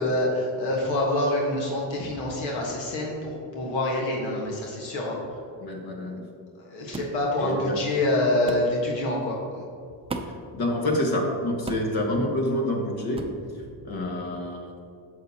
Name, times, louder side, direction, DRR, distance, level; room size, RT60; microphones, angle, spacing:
voice 1, 0.0-5.2 6.7-9.6, left 1 dB, 80° left, -2 dB, 1.5 m, -26 dB
voice 2, 5.6-6.2 7.4-7.7 10.5-13.2 13.5-14.7, left 1 dB, 55° left, 1 dB, 1.6 m, -27 dB
sound 1, 6.9-7.2 8.5-8.7 10.1-10.5 11.7-12.0 13.1-13.4, right 3 dB, 15° right, 0.5 m, -34 dB
8.8 x 6.7 x 2.9 m, 2.4 s
cardioid pair, 110°, 44 cm